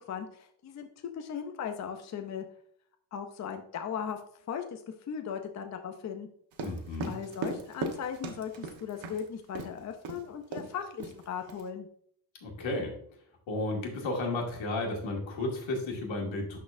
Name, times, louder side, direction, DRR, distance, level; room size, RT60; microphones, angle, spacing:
voice 1, 0.1-0.9 1.1-2.4 3.1-4.2 4.5-4.8 5.1-6.3 7.1-11.9, left 7 dB, 40° left, 5 dB, 0.5 m, -37 dB
sound 1, 6.5-9.2 9.5-9.7 10.0-10.2 10.5-10.7 11.0-11.6, right 3 dB, 75° right, 1.2 m, -37 dB
voice 2, 6.6-7.1 12.4-12.9 13.5-16.6, left 2 dB, 80° left, 0 dB, 2.1 m, -33 dB
12.0 x 4.1 x 2.5 m, 0.64 s
wide cardioid pair, 175°, 46 cm